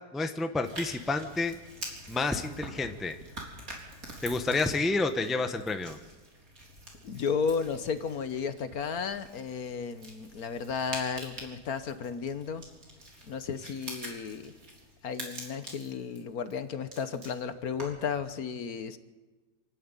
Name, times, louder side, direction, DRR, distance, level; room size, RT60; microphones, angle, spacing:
voice 1, 0.1-1.5 2.1-3.2 4.2-6.0, left 3 dB, ahead, 7 dB, 0.8 m, -29 dB
sound 1, 0.6-18.1, right 1 dB, 60° right, 4.3 m, -46 dB
voice 2, 7.0-12.6 13.3-14.5 15.0-19.0, left 6 dB, 65° left, 11 dB, 1.5 m, -33 dB
26.5 x 12.0 x 9.0 m, 1.3 s
omnidirectional pair, 1.7 m